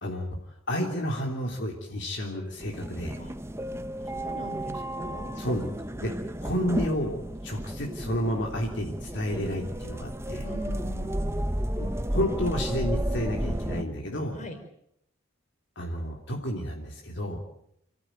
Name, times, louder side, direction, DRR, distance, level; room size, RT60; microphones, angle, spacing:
voice 1, 0.0-3.2 5.3-5.7 6.0-6.1 6.4-10.4 11.8-14.4 15.7-17.4, equal, 55° left, 1 dB, 3.3 m, -31 dB
sound 1, 2.6-13.8, right 1 dB, 10° right, 0.9 m, -32 dB
voice 2, 4.1-5.4 10.4-11.6 14.3-14.6, equal, 35° left, 6 dB, 4.6 m, -41 dB
28.0 x 15.0 x 9.3 m, 0.74 s
head